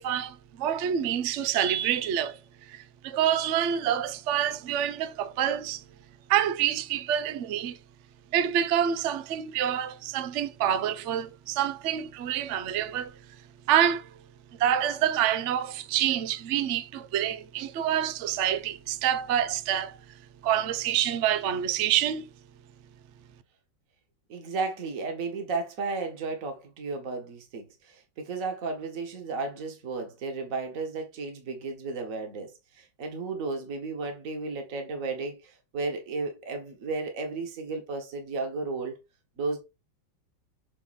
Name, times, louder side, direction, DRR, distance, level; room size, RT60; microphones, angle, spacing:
voice 1, 0.0-2.4 2.7-5.8 6.3-7.8 8.3-13.1 13.7-14.1 14.6-20.0 20.4-22.3, right 10 dB, 85° right, 0.6 m, -27 dB
voice 2, 24.3-38.9 39.4-39.6, right 3 dB, 40° right, 1.9 m, -34 dB
7.6 x 3.9 x 4.1 m
omnidirectional pair, 2.2 m